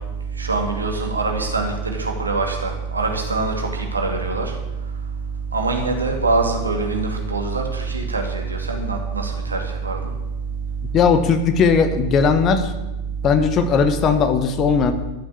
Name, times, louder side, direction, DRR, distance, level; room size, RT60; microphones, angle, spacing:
voice 1, 0.4-4.5 5.5-10.0, right 3 dB, 80° right, 3 dB, 2.5 m, -23 dB
voice 2, 10.9-12.7 13.2-14.9, left 6 dB, 30° left, 9 dB, 1.4 m, -18 dB
13.0 x 7.6 x 8.7 m, 1.0 s
figure-of-eight pair, 90°, 0 cm